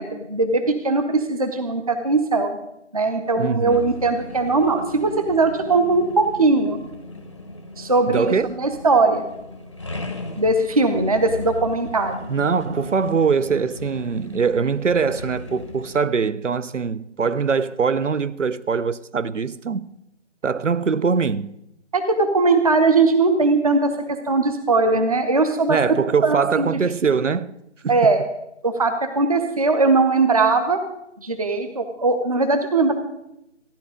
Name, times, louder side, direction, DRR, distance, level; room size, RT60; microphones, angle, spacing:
voice 1, 0.0-2.6 2.9-6.8 7.8-9.2 10.4-12.2 21.9-25.8 26.2-26.7 27.9-28.2 28.6-30.8 31.2-32.9, right 3 dB, 30° right, 0.7 m, -20 dB
voice 2, 3.4-3.8 8.1-8.5 12.3-19.9 20.4-21.5 25.7-27.5 27.8-28.1, right 5 dB, 85° right, 0.7 m, -22 dB
sound 1, 3.7-16.1, left 2 dB, 25° left, 0.7 m, -37 dB
15.0 x 10.5 x 5.0 m
figure-of-eight pair, 160°, 36 cm